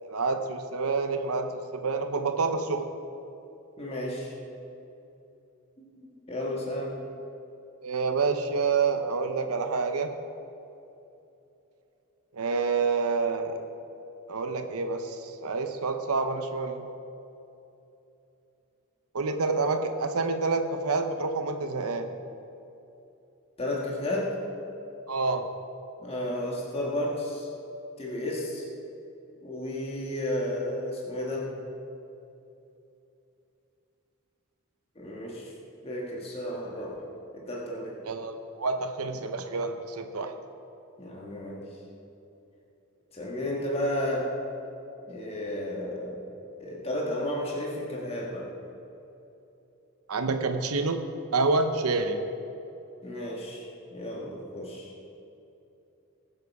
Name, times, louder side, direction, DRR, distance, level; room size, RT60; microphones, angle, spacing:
voice 1, 0.0-2.9 7.8-10.1 12.3-13.7 14.3-16.8 19.1-22.1 25.1-25.5 38.0-40.3 50.1-51.0 51.3-52.2, right 4 dB, 85° right, 6 dB, 0.8 m, -28 dB
voice 2, 3.8-4.3 5.8-7.0 23.6-24.4 26.0-27.5 28.0-28.7 29.4-31.6 34.9-35.5 35.8-37.1 37.3-38.0 41.0-41.6 43.1-44.3 45.1-46.2 46.6-48.5 53.0-54.9, left 1 dB, 25° left, -2 dB, 1.6 m, -33 dB
20.0 x 7.7 x 4.8 m, 2.9 s
head